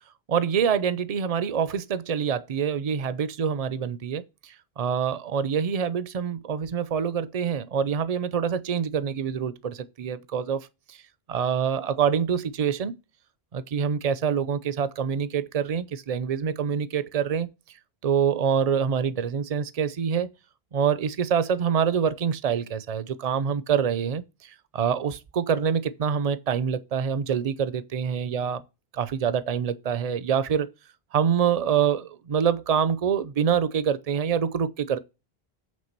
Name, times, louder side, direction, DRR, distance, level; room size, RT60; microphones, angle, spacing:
voice 1, 0.3-11.0 11.3-12.9 13.5-17.5 18.0-20.3 20.7-28.6 28.9-30.7 31.1-35.0, right 7 dB, 40° right, 0.7 m, -26 dB
8.5 x 3.7 x 6.6 m
omnidirectional pair, 1.1 m